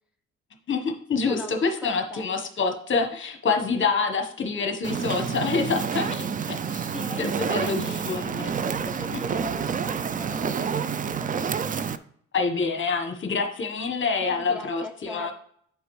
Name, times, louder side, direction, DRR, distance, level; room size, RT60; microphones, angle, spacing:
voice 1, 0.7-6.9 7.2-8.5 12.3-15.3, left 4 dB, 40° left, 5 dB, 1.1 m, -27 dB
voice 2, 1.3-2.3 6.9-8.0 8.6-11.3 14.3-15.3, left 1 dB, 5° right, 1 dB, 0.7 m, -40 dB
Fire, 4.8-12.0, right 6 dB, 30° right, 0.3 m, -29 dB
8.2 x 5.0 x 3.1 m, 0.64 s
cardioid pair, 90°, 30 cm